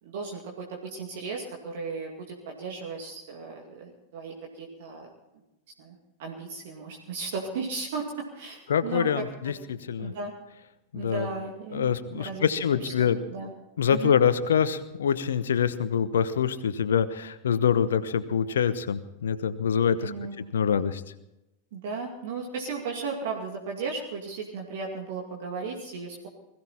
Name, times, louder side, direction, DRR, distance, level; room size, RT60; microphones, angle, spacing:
voice 1, 0.0-5.1 5.8-9.5 10.0-10.3 10.9-13.5 13.9-14.1 20.0-20.4 21.7-26.3, right 4 dB, 55° right, 0 dB, 2.4 m, -36 dB
voice 2, 8.7-9.5 9.9-10.1 10.9-11.3 11.7-13.2 13.8-20.1 20.5-21.0, left 7 dB, 65° left, 12 dB, 0.9 m, -25 dB
21.0 x 15.0 x 4.3 m, 0.92 s
figure-of-eight pair, 90°, 0 cm